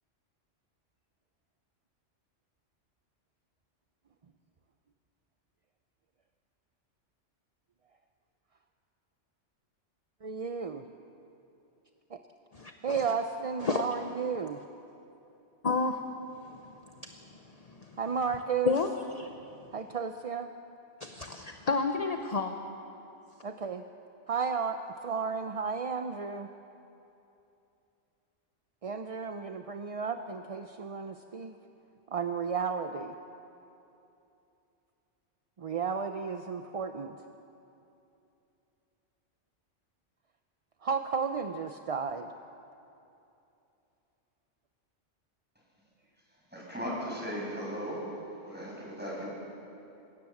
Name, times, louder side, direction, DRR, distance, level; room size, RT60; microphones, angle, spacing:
voice 1, 10.2-10.9 12.1-12.2 12.8-14.6 18.0-18.7 19.7-20.5 23.4-23.8 24.3-26.5 28.8-31.6 32.1-33.1 35.6-37.2 40.8-42.3, right 6 dB, 40° right, 7 dB, 0.5 m, -33 dB
voice 2, 12.5-13.0 13.6-13.8 15.6-16.0 16.4-16.7 17.0-17.3 17.7-18.0 18.6-18.9 19.2-19.5 21.0-22.5, left 4 dB, 35° left, 5 dB, 0.9 m, -31 dB
voice 3, 46.5-48.0 48.4-49.3, equal, 10° right, -5 dB, 6.7 m, -37 dB
26.0 x 17.0 x 7.2 m, 2.8 s
omnidirectional pair, 1.3 m